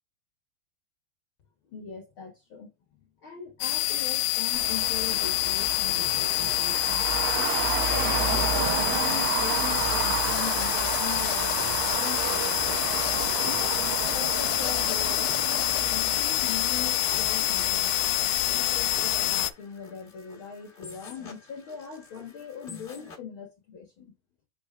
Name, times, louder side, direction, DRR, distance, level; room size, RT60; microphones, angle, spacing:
voice 1, 1.7-2.7 3.2-7.5 7.9-12.8 13.4-17.9 18.5-24.1, left 7 dB, 60° left, 1.4 m, -41 dB
sound 1, 3.6-19.5, left 17 dB, 80° left, 2.0 m, -27 dB
Traffic noise roadway noise, 4.5-19.5, right 7 dB, 85° right, 2.6 m, -32 dB
sound 2, 5.3-23.2, left 3 dB, 40° left, 0.7 m, -48 dB
6.9 x 5.7 x 2.4 m
omnidirectional pair, 3.8 m